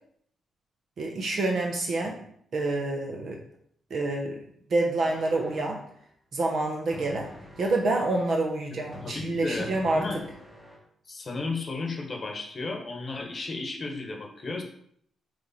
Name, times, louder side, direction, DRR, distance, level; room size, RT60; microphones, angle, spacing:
voice 1, 1.0-2.3 2.5-3.4 3.9-4.4 4.7-5.8 6.3-7.3 7.6-10.1, right 2 dB, 50° right, 1 dB, 0.9 m, -27 dB
sound 1, 5.0-5.9 6.9-8.5 8.9-10.8, equal, 5° right, 1.5 m, -46 dB
voice 2, 9.0-10.2 11.1-14.6, left 3 dB, 30° left, 2 dB, 1.2 m, -34 dB
7.8 x 3.3 x 4.2 m, 0.66 s
cardioid pair, 150°, 0 cm